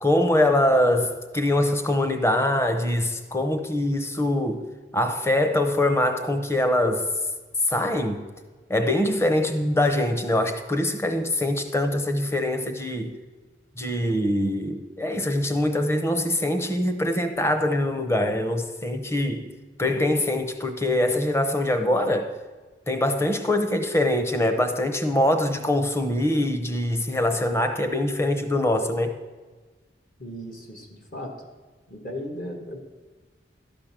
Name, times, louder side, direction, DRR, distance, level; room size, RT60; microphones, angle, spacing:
voice 1, 0.0-4.6 4.9-7.1 7.6-8.2 8.7-13.2 13.8-19.5 19.8-22.3 22.9-29.1, left 1 dB, 15° left, 0.8 m, -23 dB
voice 2, 30.2-31.3 31.9-32.8, equal, 50° left, 1.4 m, -36 dB
12.5 x 5.2 x 7.4 m
head